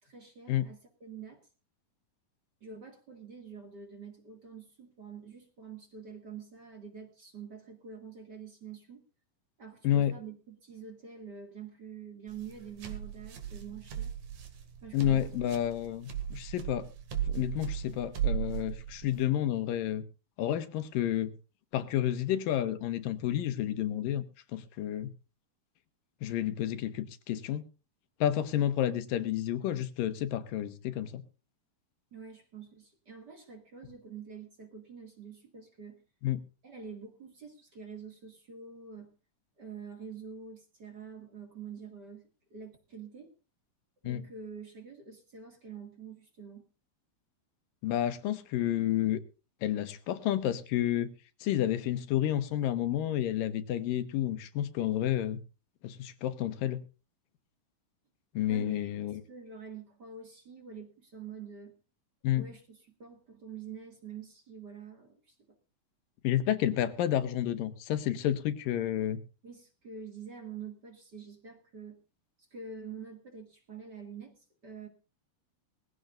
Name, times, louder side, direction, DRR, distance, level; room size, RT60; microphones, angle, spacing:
voice 1, 0.0-1.5 2.6-9.0 9.6-14.1 14.8-15.3 32.1-36.0 36.6-39.2 39.6-43.3 44.0-46.6 58.5-58.9 59.3-61.8 62.3-65.6 69.4-72.0 72.4-74.9, right 6 dB, 35° right, 4 dB, 2.1 m, -46 dB
voice 2, 9.8-10.2 14.9-16.9 17.3-20.0 20.4-21.3 21.7-24.2 24.5-25.1 26.2-27.7 28.2-31.2 36.2-36.4 44.0-44.2 47.8-49.2 49.6-51.1 51.4-55.4 55.8-56.8 58.3-59.2 62.2-62.5 66.2-69.2, left 11 dB, 75° left, 11 dB, 2.7 m, -30 dB
sound 1, 12.3-19.2, right 9 dB, 60° right, 3.2 m, -36 dB
20.5 x 16.0 x 2.5 m, 0.32 s
omnidirectional pair, 4.1 m